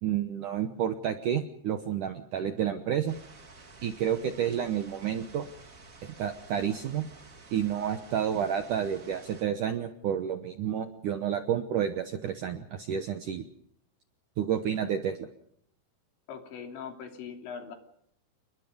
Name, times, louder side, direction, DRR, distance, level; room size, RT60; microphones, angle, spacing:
voice 1, 0.0-3.1 3.8-5.5 6.0-7.1 7.5-13.4 14.4-15.3, right 9 dB, 80° right, 7 dB, 1.8 m, -30 dB
sound 1, 3.1-9.4, right 3 dB, 45° right, 1.0 m, -51 dB
voice 2, 16.3-17.8, left 7 dB, 70° left, 4 dB, 5.2 m, -41 dB
29.0 x 22.0 x 5.3 m, 0.70 s
omnidirectional pair, 5.4 m